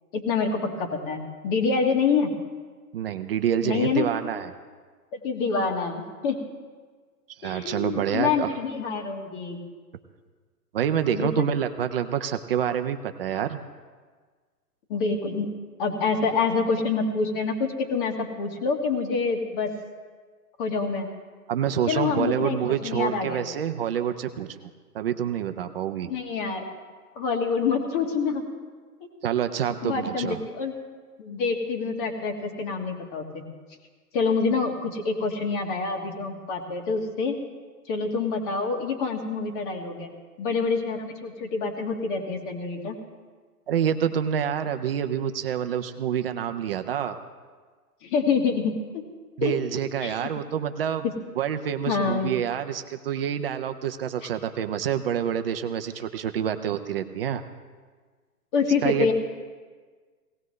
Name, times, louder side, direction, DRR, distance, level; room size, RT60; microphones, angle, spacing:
voice 1, 0.1-2.3 3.6-4.1 5.1-6.4 7.4-9.6 11.1-11.5 14.9-15.5 15.8-19.7 20.6-21.1 21.9-23.4 26.1-26.7 27.2-28.4 29.0-29.1 29.8-30.7 31.2-33.4 34.1-37.4 37.9-40.1 40.4-43.0 48.0-49.0 49.4-50.2 51.0-51.1 51.9-52.3 54.2-54.3 58.5-59.1, left 4 dB, 30° left, 4 dB, 1.8 m, -26 dB
voice 2, 2.9-4.5 7.4-8.5 10.7-13.6 21.5-24.6 24.9-26.1 29.2-30.4 43.7-47.2 49.4-51.0 51.4-57.4 58.8-59.1, right 9 dB, 40° right, 8 dB, 0.7 m, -27 dB
18.0 x 16.5 x 3.2 m, 1.5 s
hypercardioid pair, 145°, 47 cm